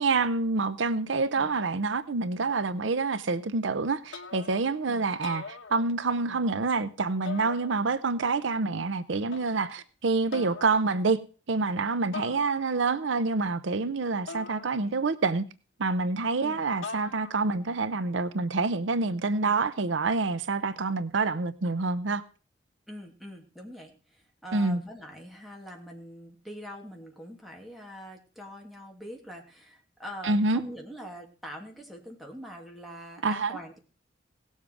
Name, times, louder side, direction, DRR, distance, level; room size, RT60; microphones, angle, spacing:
voice 1, 0.0-11.2 11.5-15.4 15.8-22.2 24.5-24.8 30.2-30.6 33.2-33.6, right 3 dB, 70° right, 0.7 m, -27 dB
sound 1, 4.1-4.8 5.1-6.3 7.3-8.2 9.3-9.8 10.3-10.8 12.1-13.0 14.3-15.3 16.8-17.6, left 4 dB, 80° left, 1.2 m, -42 dB
voice 2, 22.9-33.8, equal, ahead, 2.7 m, -44 dB
17.5 x 7.4 x 4.8 m
head